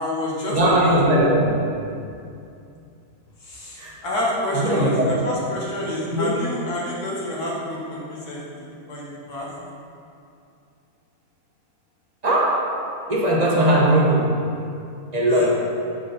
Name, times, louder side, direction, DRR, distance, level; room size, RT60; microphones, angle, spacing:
voice 1, 0.0-1.0 3.4-9.5 15.3-15.5, left 1 dB, 85° left, -5 dB, 1.7 m, -28 dB
voice 2, 0.5-1.6 3.8-4.0 4.5-5.1 6.1-6.4 12.2-12.6 13.1-14.6 15.1-15.5, right 1 dB, 35° right, -3 dB, 0.7 m, -19 dB
7.1 x 3.9 x 3.9 m, 2.5 s
omnidirectional pair, 1.6 m